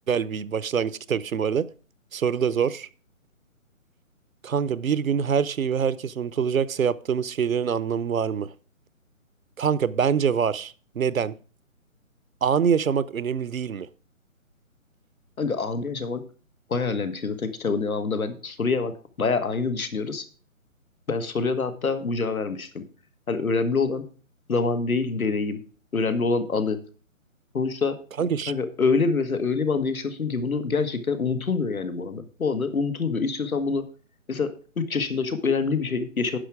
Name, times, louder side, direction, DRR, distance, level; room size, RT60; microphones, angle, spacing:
voice 1, 0.1-1.6 2.1-2.9 4.4-8.5 9.6-11.3 12.4-13.9 28.2-28.5, right 7 dB, 75° right, 0.8 m, -25 dB
voice 2, 15.4-16.2 16.7-18.9 19.2-20.3 21.1-22.8 23.3-24.0 24.5-25.6 25.9-26.8 27.5-28.0 28.5-33.8 34.3-34.5 34.8-36.4, left 4 dB, 85° left, 1.6 m, -26 dB
10.0 x 6.2 x 4.7 m
figure-of-eight pair, 155°, 41 cm